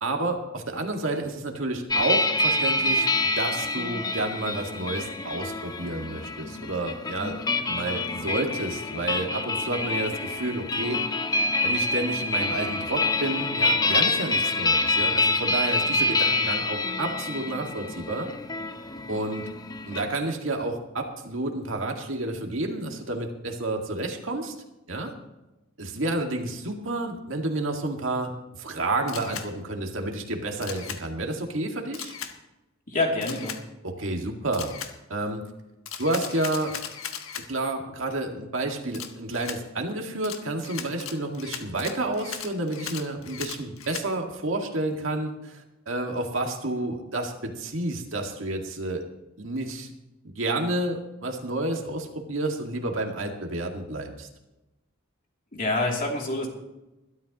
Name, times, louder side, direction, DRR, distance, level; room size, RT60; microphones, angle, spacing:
voice 1, 0.0-3.1 3.4-7.4 7.7-11.0 11.6-18.3 19.1-19.4 19.9-24.5 24.9-25.1 25.8-28.3 28.6-32.1 33.8-34.8 35.1-35.4 36.0-36.8 37.5-45.6 45.9-49.0 49.4-49.9 50.4-54.3, right 2 dB, 70° right, 2 dB, 2.0 m, -30 dB
sound 1, 1.9-20.1, left 2 dB, 20° left, 0.7 m, -27 dB
Camera, 29.1-29.5 30.6-31.0 31.9-32.3 33.2-33.6 34.5-34.9 35.9-37.5 38.9-39.6 40.2-44.1, left 8 dB, 80° left, 1.4 m, -37 dB
voice 2, 32.9-33.6 55.5-56.5, left 2 dB, 45° left, 0 dB, 2.9 m, -26 dB
21.5 x 12.5 x 3.0 m, 0.98 s
head